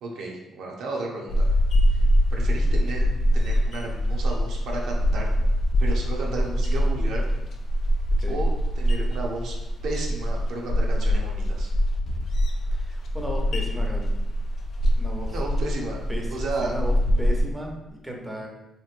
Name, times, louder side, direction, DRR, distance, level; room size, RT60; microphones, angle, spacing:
voice 1, 0.0-1.5 1.9-2.0 2.3-3.1 3.3-5.3 5.8-7.2 8.3-9.6 9.8-11.7 15.3-16.0 16.3-16.7, right 2 dB, 80° right, -1 dB, 0.5 m, -33 dB
sound 1, 1.3-17.4, equal, 55° left, 0.3 m, -24 dB
voice 2, 12.7-14.1 14.9-15.4 16.1-18.5, right 1 dB, 5° right, 0 dB, 0.6 m, -35 dB
3.0 x 2.5 x 2.4 m, 0.92 s
cardioid pair, 90°, 0 cm